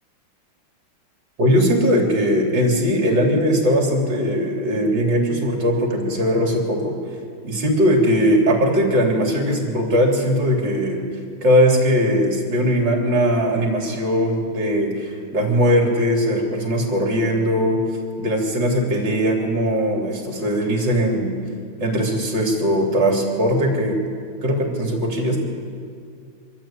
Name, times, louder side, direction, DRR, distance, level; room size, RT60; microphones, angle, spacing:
voice 1, 1.4-6.9 7.4-11.0 11.4-17.8 18.2-21.4 21.8-24.0 24.4-25.4, equal, 55° right, 0 dB, 3.9 m, -19 dB
24.5 x 13.5 x 8.8 m, 2.3 s
omnidirectional pair, 2.3 m